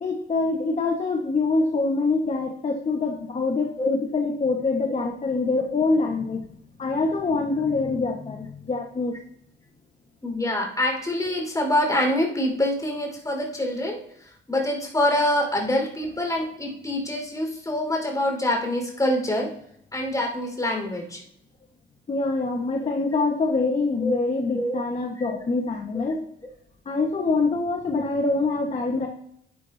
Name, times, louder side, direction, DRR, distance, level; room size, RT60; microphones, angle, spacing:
voice 1, 0.0-6.4 6.8-9.1 22.1-26.2 26.8-29.1, left 3 dB, 35° left, 1 dB, 1.5 m, -25 dB
voice 2, 10.2-19.5 19.9-21.2 22.8-22.9 24.0-24.1 24.5-24.8 25.2-25.3, left 1 dB, 15° left, 0 dB, 4.8 m, -25 dB
12.0 x 11.5 x 2.8 m, 0.72 s
cardioid pair, 90°, 20 cm